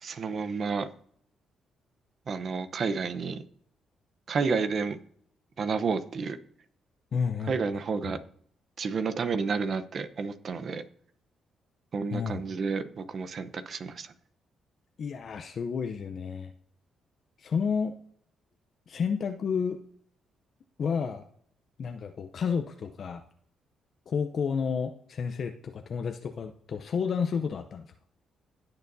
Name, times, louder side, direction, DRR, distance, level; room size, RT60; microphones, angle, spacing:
voice 1, 0.0-0.9 2.3-3.4 4.3-5.0 5.6-6.4 7.5-8.2 8.8-10.8 11.9-14.1, right 5 dB, 50° right, 10 dB, 0.8 m, -30 dB
voice 2, 7.1-7.5 8.0-8.2 12.1-12.4 15.0-16.5 17.4-17.9 18.9-19.8 20.8-21.2 21.8-23.2 24.1-27.9, left 6 dB, 55° left, 6 dB, 0.6 m, -31 dB
17.0 x 6.8 x 2.7 m, 0.63 s
cardioid pair, 80°, 0 cm